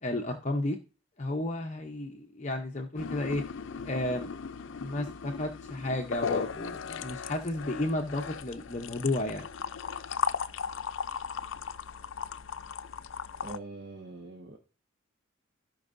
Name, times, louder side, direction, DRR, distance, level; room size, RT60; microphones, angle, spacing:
voice 1, 0.0-0.8 1.2-3.4 3.8-4.3 4.8-9.5, left 1 dB, 35° left, 0.7 m, -32 dB
sound 1, 3.0-13.6, left 6 dB, 70° left, 0.5 m, -37 dB
voice 2, 13.4-14.6, right 2 dB, 50° right, 1.3 m, -43 dB
15.5 x 5.4 x 2.6 m
head